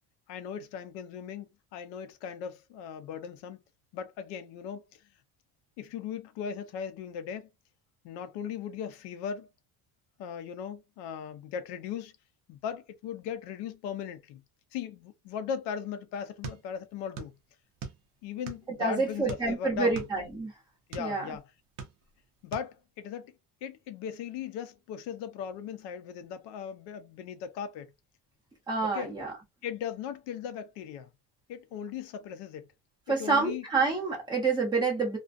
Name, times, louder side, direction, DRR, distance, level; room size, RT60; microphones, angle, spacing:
voice 1, 0.3-3.6 3.9-4.8 5.8-7.5 8.0-9.5 10.2-12.1 12.5-14.4 14.7-17.3 18.2-20.0 20.9-21.5 22.4-23.3 23.6-27.9 28.8-29.1 29.6-31.1 31.5-32.7 33.1-33.6, left 8 dB, 70° left, 0.7 m, -38 dB
sound 1, 16.4-17.4 17.6-18.8 19.3-21.1 21.6-22.2 22.5-22.7, right 5 dB, 50° right, 0.7 m, -41 dB
voice 2, 18.8-20.5 21.0-21.2 28.7-29.3 33.1-35.2, right 4 dB, 10° right, 1.0 m, -28 dB
2.3 x 2.2 x 2.5 m
cardioid pair, 160°, 43 cm